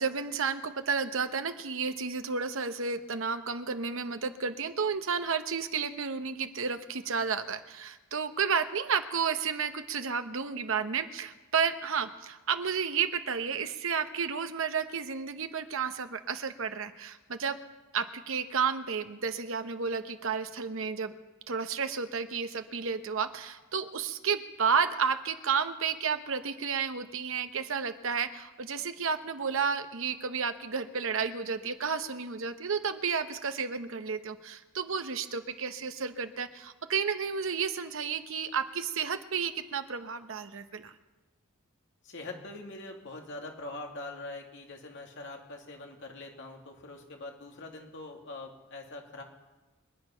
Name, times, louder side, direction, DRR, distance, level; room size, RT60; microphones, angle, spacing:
voice 1, 0.0-17.6 17.9-21.1 21.5-40.9, right 6 dB, 65° right, 9 dB, 0.9 m, -32 dB
voice 2, 42.0-49.2, left 2 dB, 60° left, 1 dB, 2.4 m, -43 dB
25.5 x 9.1 x 5.7 m, 1.1 s
head